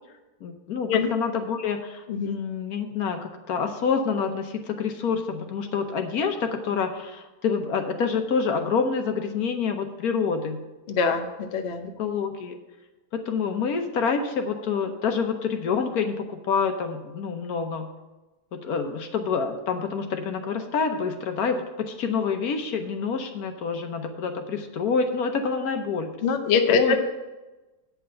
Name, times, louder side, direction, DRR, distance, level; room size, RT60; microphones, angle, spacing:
voice 1, 0.4-10.6 12.0-12.6 13.1-17.9 18.5-26.1 26.7-27.0, left 5 dB, 65° left, 6 dB, 1.3 m, -27 dB
voice 2, 10.9-11.9 26.2-27.0, left 5 dB, 50° left, 5 dB, 0.9 m, -23 dB
8.7 x 5.7 x 7.6 m, 1.1 s
omnidirectional pair, 1.7 m